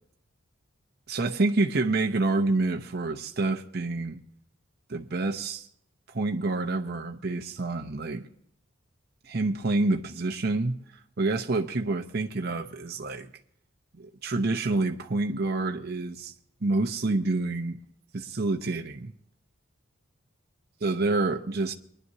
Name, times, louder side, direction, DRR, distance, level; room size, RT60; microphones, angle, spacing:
voice 1, 1.1-4.2 4.9-5.7 6.1-8.2 9.2-10.8 11.2-13.3 13.9-16.3 16.6-17.8 18.1-19.1 20.8-21.7, right 2 dB, 45° right, 0.8 m, -28 dB
23.5 x 11.0 x 2.8 m
head